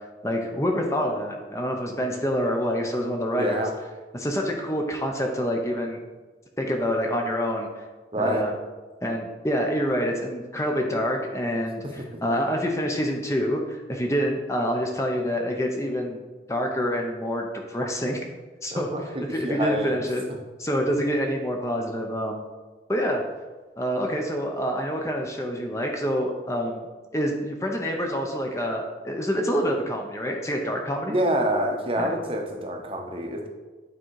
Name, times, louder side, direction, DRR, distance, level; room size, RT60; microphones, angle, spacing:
voice 1, 0.2-3.6 4.1-6.0 6.6-7.8 8.2-8.5 9.0-16.2 16.5-18.2 18.6-20.2 20.6-22.4 22.9-23.2 23.8-31.2 32.0-32.1, equal, 15° left, 2 dB, 0.7 m, -27 dB
voice 2, 3.3-3.7 8.1-8.4 18.7-20.0 31.1-33.5, right 1 dB, 30° right, 3 dB, 0.8 m, -27 dB
8.9 x 3.7 x 4.6 m, 1.3 s
head